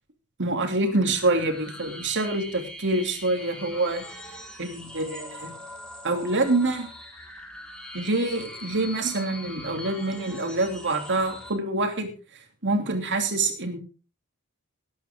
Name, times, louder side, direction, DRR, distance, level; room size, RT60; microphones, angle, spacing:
voice 1, 0.4-4.0 4.6-5.5 6.0-6.9 7.9-12.1 12.6-13.8, right 2 dB, 55° right, 5 dB, 3.1 m, -26 dB
sound 1, 0.8-11.5, left 1 dB, 5° left, 4.1 m, -42 dB
19.0 x 10.5 x 3.8 m, 0.35 s
head